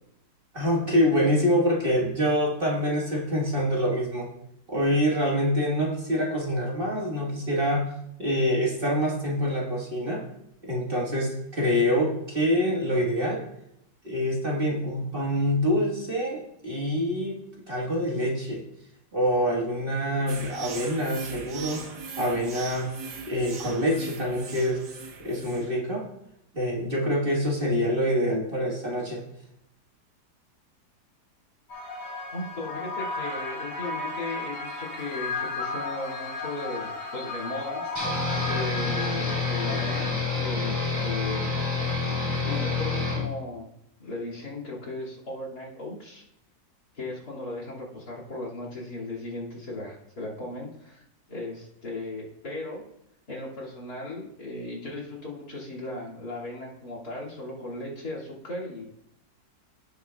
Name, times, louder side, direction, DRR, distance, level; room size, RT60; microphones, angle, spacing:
voice 1, 0.5-4.3 4.7-7.9 8.2-10.2 10.6-13.4 14.0-18.6 19.1-21.8 22.2-22.9 23.3-24.8 25.2-26.1 26.5-29.2, equal, 35° right, -3 dB, 1.7 m, -26 dB
sound 1, 20.3-25.8, right 5 dB, 85° right, 1.7 m, -40 dB
sound 2, 31.7-40.1, left 3 dB, 90° left, 3.4 m, -34 dB
voice 2, 32.3-41.5 42.4-43.7 44.0-46.2 46.9-52.8 53.3-58.8, left 2 dB, 65° left, -3 dB, 2.9 m, -37 dB
sound 3, 38.0-43.2, left 4 dB, 15° right, 3.4 m, -28 dB
16.0 x 6.5 x 2.3 m, 0.80 s
omnidirectional pair, 1.8 m